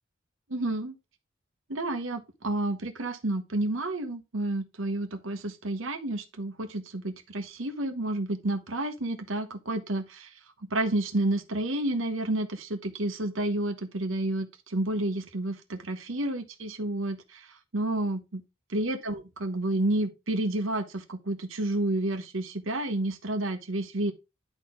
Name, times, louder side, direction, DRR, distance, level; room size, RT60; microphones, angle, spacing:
voice 1, 0.5-0.9 1.7-10.3 10.7-17.4 17.7-18.4 18.7-24.1, right 1 dB, 80° right, 1.2 m, -30 dB
10.5 x 4.2 x 3.7 m
head